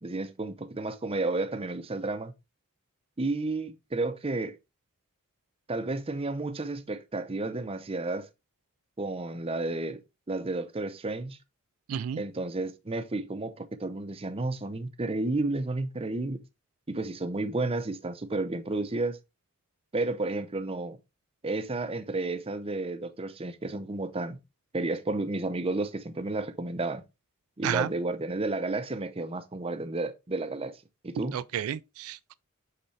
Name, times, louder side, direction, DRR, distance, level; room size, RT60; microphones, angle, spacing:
voice 1, 0.0-2.3 3.2-4.6 5.7-8.3 9.0-10.0 10.3-11.4 12.2-16.4 16.9-19.2 19.9-21.0 21.4-24.4 24.7-27.0 27.6-30.8 31.0-31.4, right 2 dB, 25° right, 0.6 m, -32 dB
voice 2, 11.9-12.2 27.6-27.9 31.3-32.3, right 9 dB, 85° right, 0.3 m, -31 dB
5.9 x 5.2 x 3.3 m
head